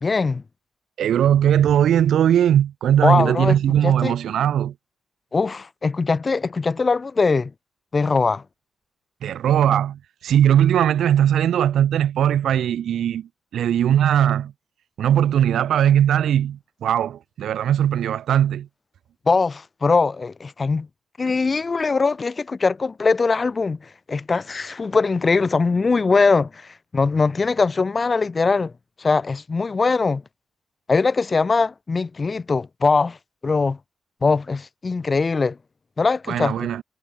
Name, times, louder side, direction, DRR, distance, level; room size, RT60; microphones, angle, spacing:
voice 1, 0.0-0.4 3.0-3.6 3.8-4.1 5.3-7.5 7.9-8.4 19.3-20.9 21.2-28.7 29.0-30.2 30.9-33.2 33.4-33.8 34.2-35.6 36.0-36.7, left 4 dB, 40° left, 1.1 m, -21 dB
voice 2, 1.0-4.7 9.2-14.5 15.0-18.7 36.3-36.8, right 10 dB, 85° right, 0.5 m, -19 dB
cardioid pair, 65°, 0 cm